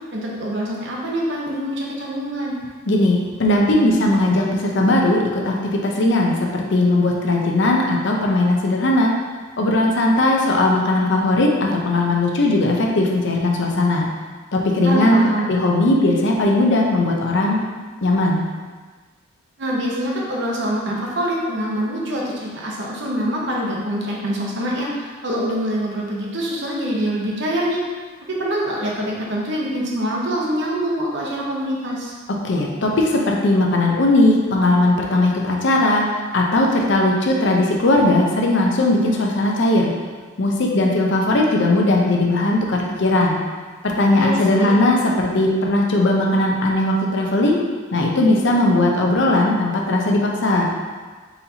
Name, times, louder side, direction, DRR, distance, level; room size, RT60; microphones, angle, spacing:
voice 1, 0.1-2.6 14.8-15.5 19.6-27.8 28.3-32.1 44.2-44.7, equal, 60° right, -3 dB, 0.9 m, -25 dB
voice 2, 2.9-9.1 9.6-14.1 14.5-15.2 15.5-17.6 18.0-18.5 32.4-39.9 40.4-43.4 43.8-47.6 47.9-50.7, left 2 dB, 60° left, 0 dB, 0.6 m, -18 dB
4.2 x 4.0 x 2.8 m, 1.4 s
head